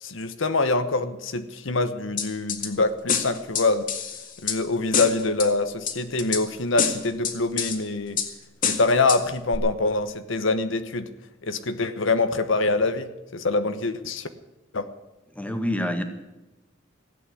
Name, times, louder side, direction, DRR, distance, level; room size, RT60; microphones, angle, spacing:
voice 1, 0.0-3.9 4.4-8.2 8.6-11.1 11.4-14.3 14.7-14.9, left 3 dB, 70° left, 10 dB, 1.1 m, -25 dB
sound 1, 2.2-2.7 3.1-4.6 4.9-5.5 5.9-6.4 6.8-7.8 8.2-8.3 8.6-9.2 9.5-9.6, left 7 dB, 45° left, 2.0 m, -26 dB
voice 2, 15.4-16.0, equal, 5° left, 6 dB, 1.7 m, -26 dB
16.5 x 8.8 x 9.5 m, 1.0 s
head